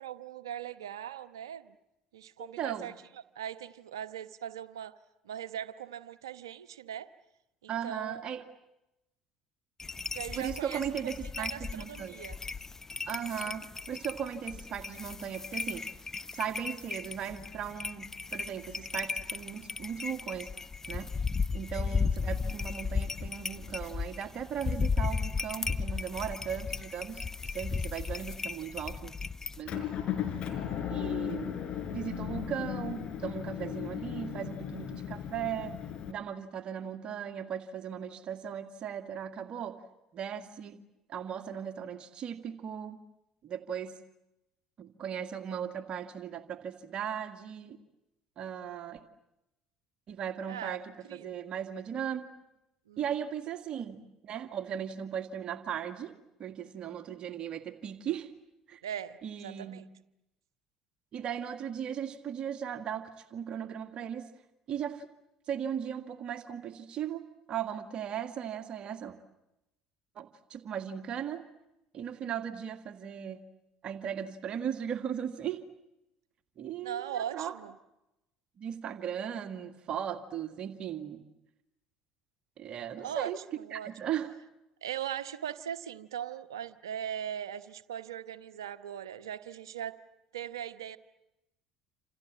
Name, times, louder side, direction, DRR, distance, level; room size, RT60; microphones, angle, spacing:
voice 1, 0.0-1.7 2.1-2.9 3.3-4.9 5.2-7.1 7.6-8.2 10.1-10.8 11.4-11.6 11.9-12.4 21.7-22.1 50.5-50.8 51.1-51.3 52.9-53.0 58.8-59.9 72.2-72.3 76.8-77.7 83.0-83.3 83.6-83.9 84.8-90.0 90.3-91.0, right 10 dB, 80° right, 11 dB, 1.1 m, -39 dB
voice 2, 2.4-2.9 7.7-8.4 10.3-12.2 13.1-15.9 16.3-20.5 20.9-21.1 21.5-27.3 27.5-29.1 29.6-30.2 30.9-31.6 31.9-35.8 36.1-39.8 40.1-40.8 41.1-43.0 43.4-44.0 44.8-47.8 48.4-49.0 50.1-52.2 53.0-58.3 58.7-58.8 59.2-59.8 61.1-64.3 64.7-65.1 65.5-69.2 70.2-71.4 71.9-73.4 73.8-75.6 76.6-77.6 78.6-81.2 82.6-83.4 83.7-84.3, right 8 dB, 45° right, 8 dB, 2.1 m, -37 dB
sound 1, 9.8-29.6, left 4 dB, 20° left, 0.9 m, -35 dB
Motor vehicle (road) / Engine, 29.6-36.1, left 9 dB, 50° left, 4.7 m, -36 dB
28.5 x 28.0 x 7.6 m, 0.90 s
figure-of-eight pair, 60°, 2 cm